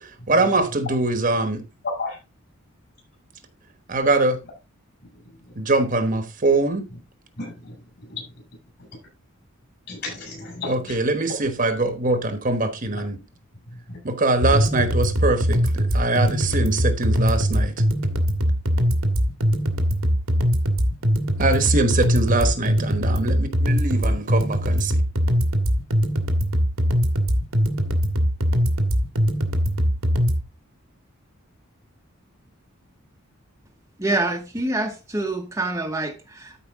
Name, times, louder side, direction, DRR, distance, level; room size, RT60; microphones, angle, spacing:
voice 1, 0.0-1.6 3.9-4.4 5.6-6.8 10.6-13.2 14.0-17.7 21.4-24.9, right 2 dB, 40° right, 1.2 m, -23 dB
voice 2, 1.8-2.2 7.4-7.7 8.1-8.2 9.9-10.9 13.9-14.0, left 3 dB, 50° left, 6.4 m, -32 dB
sound 1, 14.4-30.4, equal, 90° right, 1.8 m, -21 dB
voice 3, 34.0-36.6, right 2 dB, 15° right, 1.0 m, -26 dB
13.0 x 4.9 x 3.6 m
head